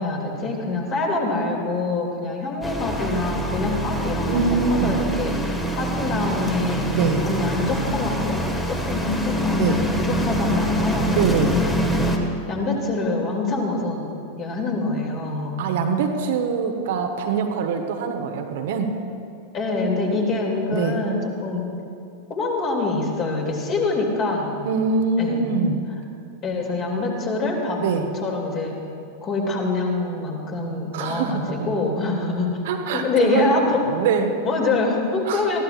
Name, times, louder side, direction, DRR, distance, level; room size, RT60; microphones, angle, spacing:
voice 1, 0.0-4.4 4.7-8.4 8.7-12.2 12.5-14.1 14.4-15.6 19.5-21.6 22.3-24.6 25.2-25.4 26.4-27.8 28.1-28.8 29.2-32.6 32.9-33.8 34.4-35.6, left 3 dB, 30° left, 0 dB, 2.6 m, -25 dB
sound 1, 2.6-12.2, equal, 10° left, 1.4 m, -25 dB
voice 2, 4.3-5.0 6.9-7.2 9.5-9.8 11.1-11.6 15.6-18.9 20.7-21.0 24.7-25.8 27.8-28.1 30.9-31.5 32.6-34.4 35.3-35.4, right 5 dB, 55° right, 4 dB, 1.1 m, -23 dB
21.0 x 15.5 x 2.5 m, 2.5 s
figure-of-eight pair, 90°, 0 cm